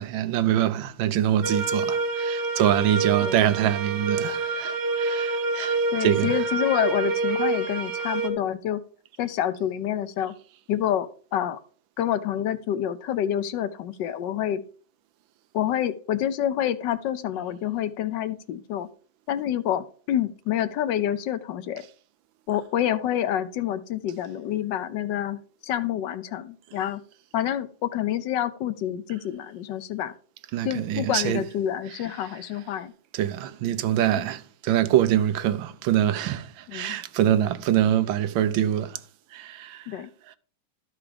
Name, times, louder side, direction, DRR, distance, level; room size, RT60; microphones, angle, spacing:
voice 1, 0.0-6.4 30.5-31.4 33.1-39.0 39.3-39.8, right 11 dB, 85° right, 1.4 m, -24 dB
sound 1, 1.4-8.3, right 3 dB, 65° right, 1.8 m, -27 dB
voice 2, 5.9-8.8 9.2-10.3 10.7-11.6 12.0-14.6 15.5-18.9 19.3-21.8 22.5-27.0 27.3-30.1 30.6-32.9 34.2-34.3 36.7-37.0 39.9-40.1, left 11 dB, 75° left, 1.3 m, -28 dB
12.5 x 4.8 x 5.0 m
omnidirectional pair, 2.1 m